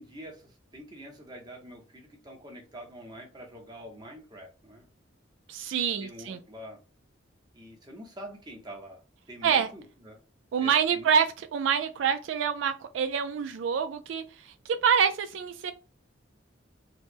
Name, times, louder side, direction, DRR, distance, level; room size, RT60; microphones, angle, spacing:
voice 1, 0.0-4.9 6.0-6.8 7.5-9.0 9.3-10.2 10.6-11.1, equal, 20° right, 0.9 m, -45 dB
voice 2, 5.5-6.4 9.4-9.7 10.5-15.7, right 7 dB, 80° right, 0.3 m, -26 dB
3.0 x 2.0 x 3.4 m
head